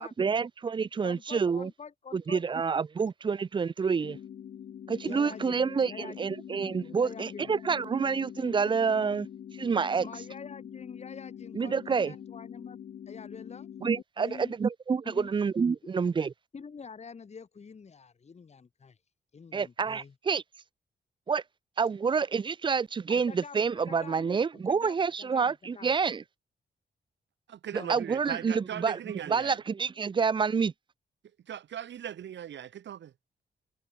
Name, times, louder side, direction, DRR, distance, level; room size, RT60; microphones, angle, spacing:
voice 1, 0.0-1.7 2.1-4.2 4.9-9.3 9.6-10.0 11.5-12.1 13.8-16.3 19.5-20.4 21.3-21.4 21.8-26.2 27.9-29.0 29.3-30.7, right 5 dB, 25° right, 0.4 m, -28 dB
voice 2, 1.0-2.4 5.0-6.3 6.9-7.5 10.0-12.8 13.1-13.7 14.2-14.6 15.0-15.3 16.5-19.0 19.3-20.1 23.1-25.9 27.7-28.0, left 5 dB, 35° left, 1.4 m, -46 dB
sound 1, 4.0-14.0, left 9 dB, 55° left, 0.5 m, -45 dB
voice 3, 27.5-29.6 31.5-33.1, right 10 dB, 85° right, 1.7 m, -39 dB
wide cardioid pair, 120°, 18 cm